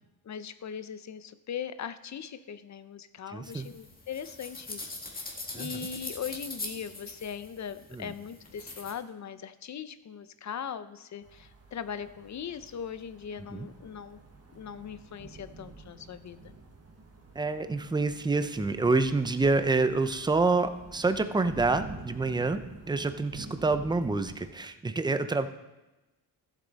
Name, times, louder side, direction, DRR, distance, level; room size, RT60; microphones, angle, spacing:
voice 1, 0.2-14.2 14.5-16.4, left 8 dB, 45° left, 13 dB, 0.6 m, -40 dB
voice 2, 3.3-3.7 5.5-5.7 7.9-8.1 13.5-13.7 17.4-22.6 22.9-25.5, right 3 dB, 10° right, 10 dB, 0.5 m, -27 dB
sound 1, 3.4-8.9, left 2 dB, 20° left, 1.7 m, -42 dB
sound 2, 11.2-24.5, right 3 dB, 35° right, 1.4 m, -48 dB
14.5 x 7.4 x 4.0 m, 1.0 s
cardioid pair, 125°, 40 cm